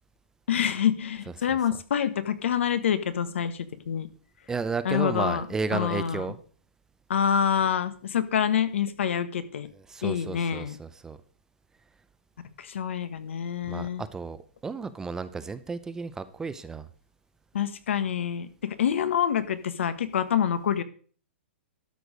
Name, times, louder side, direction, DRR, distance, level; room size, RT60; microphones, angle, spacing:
voice 1, 0.5-4.1 4.8-5.4 5.7-6.3 7.1-9.7 10.0-10.8 12.6-14.0 17.5-20.8, left 8 dB, 80° left, 12 dB, 1.3 m, -27 dB
voice 2, 4.5-6.4 9.9-11.2 13.7-16.9, right 4 dB, 10° right, 13 dB, 0.5 m, -33 dB
12.5 x 6.6 x 5.1 m, 0.43 s
hypercardioid pair, 155°, 7 cm